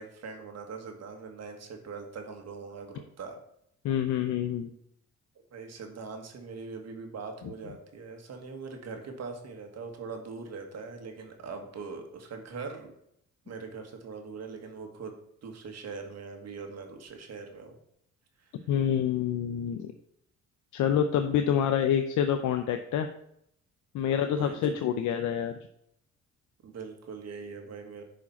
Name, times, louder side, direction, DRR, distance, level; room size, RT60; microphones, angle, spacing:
voice 1, 0.0-3.4 5.5-12.9 13.4-15.1 15.4-17.7 24.1-24.7 26.6-28.0, right 4 dB, 60° right, 4 dB, 1.7 m, -41 dB
voice 2, 3.8-4.7 18.7-19.9 20.7-23.1 23.9-25.5, left 9 dB, 80° left, 7 dB, 0.6 m, -27 dB
10.0 x 5.0 x 4.2 m, 0.74 s
cardioid pair, 90°, 30 cm